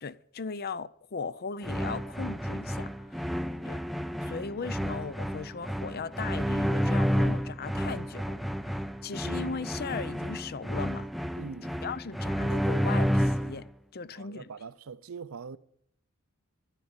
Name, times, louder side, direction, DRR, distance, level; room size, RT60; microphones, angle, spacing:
voice 1, 0.0-3.3 3.6-3.8 4.2-8.4 9.0-11.1 11.8-14.5, left 5 dB, 45° left, 0.6 m, -38 dB
sound 1, 1.6-13.7, equal, ahead, 0.5 m, -30 dB
voice 2, 11.4-11.7 14.1-15.6, right 5 dB, 75° right, 0.6 m, -42 dB
12.5 x 10.0 x 8.8 m
head